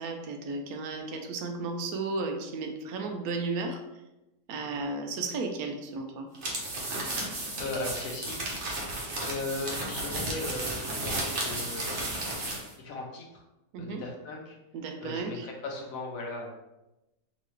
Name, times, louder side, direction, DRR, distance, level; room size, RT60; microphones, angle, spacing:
voice 1, 0.0-3.8 4.5-6.3 13.7-14.0 14.7-15.5, right 3 dB, 85° right, 5 dB, 1.1 m, -34 dB
sound 1, 6.3-12.7, right 1 dB, 55° right, 1.2 m, -33 dB
voice 2, 7.2-8.4 9.2-12.1 12.5-13.4 13.8-14.6 15.0-16.6, left 2 dB, 70° left, 0 dB, 1.2 m, -38 dB
3.8 x 3.1 x 3.2 m, 0.96 s
omnidirectional pair, 1.5 m